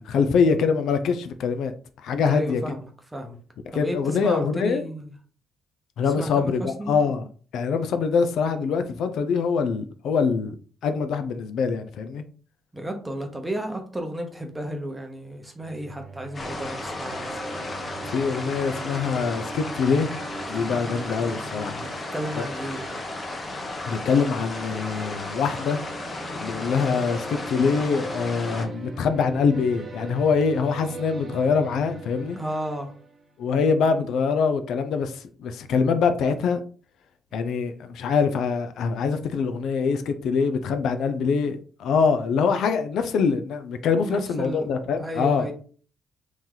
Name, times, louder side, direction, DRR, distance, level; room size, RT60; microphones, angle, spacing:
voice 1, 0.0-1.7 2.0-2.6 3.7-4.8 6.0-7.2 7.5-10.6 10.8-12.2 18.1-20.1 20.5-21.8 22.4-22.5 23.9-25.8 26.4-32.4 33.4-36.6 37.3-45.5, left 5 dB, 75° left, 0.4 m, -24 dB
voice 2, 2.3-2.8 3.1-3.4 3.7-5.1 6.2-7.0 12.7-17.4 21.8-22.8 32.3-32.9 44.0-44.7 45.0-45.5, right 1 dB, 10° right, 0.9 m, -33 dB
sound 1, 15.6-33.3, right 2 dB, 40° right, 1.1 m, -41 dB
sound 2, 16.3-28.7, left 2 dB, 30° left, 0.8 m, -34 dB
3.0 x 2.7 x 3.8 m
cardioid pair, 90°, 0 cm